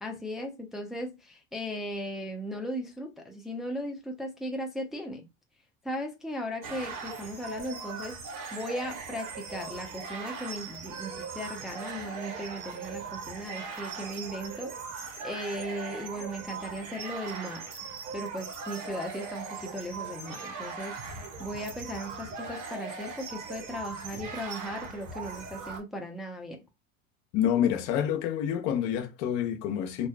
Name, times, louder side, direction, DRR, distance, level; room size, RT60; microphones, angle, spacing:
voice 1, 0.0-5.2 5.8-8.2 8.5-14.7 15.2-17.6 18.1-26.6, equal, ahead, 0.5 m, -37 dB
sound 1, 6.6-25.8, right 4 dB, 50° right, 0.9 m, -39 dB
voice 2, 27.3-30.1, left 9 dB, 60° left, 0.7 m, -27 dB
2.6 x 2.2 x 2.2 m
hypercardioid pair, 90°, 39 cm